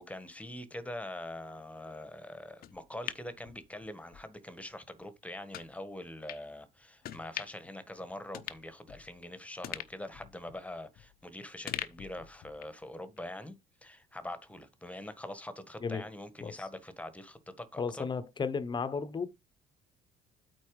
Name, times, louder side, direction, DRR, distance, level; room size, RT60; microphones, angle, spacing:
voice 1, 0.0-13.6 13.8-18.0, left 1 dB, 10° left, 1.4 m, -44 dB
sound 1, 2.6-4.2 4.6-4.7 5.5-5.7 6.3-6.4 7.0-7.7 8.0-8.1 8.3-9.2 9.6-11.2 11.7-12.8 13.2-13.3, left 12 dB, 65° left, 0.8 m, -43 dB
voice 2, 17.8-19.3, left 5 dB, 25° left, 1.0 m, -33 dB
8.6 x 4.4 x 4.8 m
cardioid pair, 110°, 17 cm